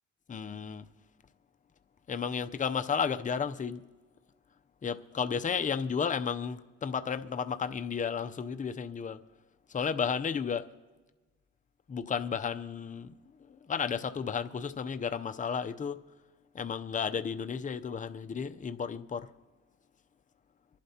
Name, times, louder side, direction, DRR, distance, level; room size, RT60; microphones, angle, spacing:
voice 1, 0.3-0.8 2.1-3.8 4.8-9.2 9.7-10.7 11.9-13.1 13.5-16.0 16.5-19.3, left 6 dB, 25° left, 0.6 m, -33 dB
25.5 x 11.5 x 2.9 m
cardioid pair, 90°, 30 cm